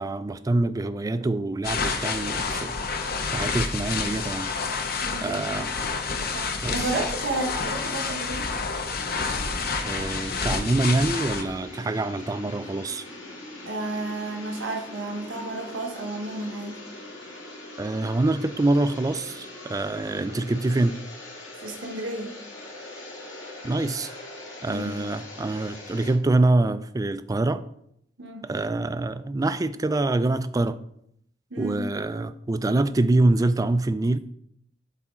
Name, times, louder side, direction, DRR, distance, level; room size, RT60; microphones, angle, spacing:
voice 1, 0.0-3.0 3.3-4.5 5.2-5.7 6.6-6.9 9.8-13.0 17.8-21.0 23.6-24.1 24.6-27.6 28.4-30.8 31.6-34.2, right 2 dB, 20° right, 0.3 m, -25 dB
sound 1, 1.6-11.4, left 4 dB, 50° left, 0.7 m, -29 dB
voice 2, 5.0-5.4 6.1-8.5 13.7-16.8 21.6-22.3 24.7-25.0 28.2-28.5 31.5-31.8, right 2 dB, 85° right, 1.2 m, -32 dB
sound 2, 8.9-26.1, left 2 dB, 70° left, 2.3 m, -42 dB
12.0 x 4.1 x 3.7 m
head